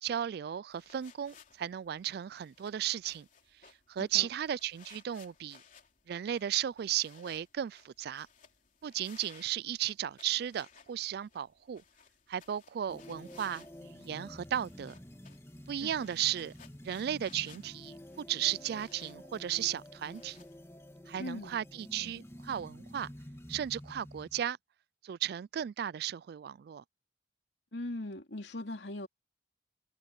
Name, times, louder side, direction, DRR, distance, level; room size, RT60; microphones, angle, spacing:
voice 1, 0.0-3.3 3.9-5.6 6.1-8.3 8.8-11.8 12.3-14.9 15.7-16.5 16.8-20.4 21.1-23.1 23.5-24.6 25.0-26.8, right 10 dB, 60° right, 0.3 m, -35 dB
sound 1, 0.7-20.6, left 6 dB, 45° left, 3.3 m, -61 dB
voice 2, 4.0-4.3 15.8-16.1 21.2-21.5 27.7-29.1, left 1 dB, 75° left, 2.9 m, -40 dB
sound 2, 12.9-24.4, equal, 15° left, 2.7 m, -50 dB
head